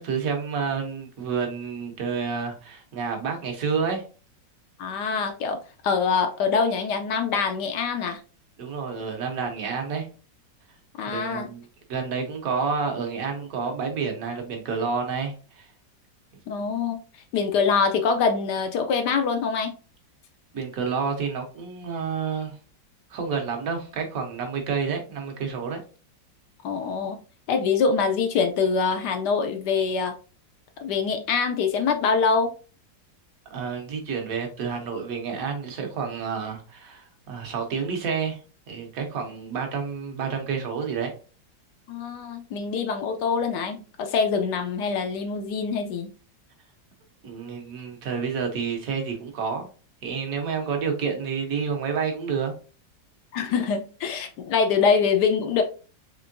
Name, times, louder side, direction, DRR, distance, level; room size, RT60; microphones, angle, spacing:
voice 1, 0.0-4.0 8.6-10.1 11.1-11.6 11.9-15.7 20.5-22.6 23.1-25.8 33.5-38.4 38.7-41.1 47.2-49.7 50.0-52.5, right 5 dB, 55° right, 1.2 m, -29 dB
voice 2, 4.8-5.6 5.8-8.2 11.0-11.5 16.5-17.0 17.3-19.7 26.6-27.2 27.5-30.1 30.8-32.5 41.9-46.1 53.3-55.6, left 5 dB, 70° left, 1.1 m, -24 dB
4.5 x 3.3 x 2.6 m
omnidirectional pair, 2.0 m